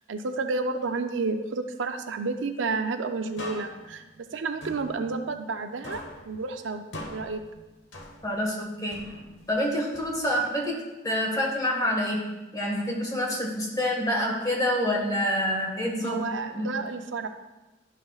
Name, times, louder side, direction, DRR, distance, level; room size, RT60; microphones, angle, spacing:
voice 1, 0.1-6.8 7.1-7.4 16.0-17.3, right 3 dB, 75° right, 7 dB, 0.5 m, -31 dB
sound 1, 3.4-5.6 5.8-8.5 8.9-10.6, left 1 dB, 75° left, 1.0 m, -43 dB
voice 2, 8.2-9.1 9.5-10.8 11.0-16.7, equal, 20° left, -1 dB, 1.5 m, -27 dB
11.5 x 5.8 x 2.4 m, 1.0 s
head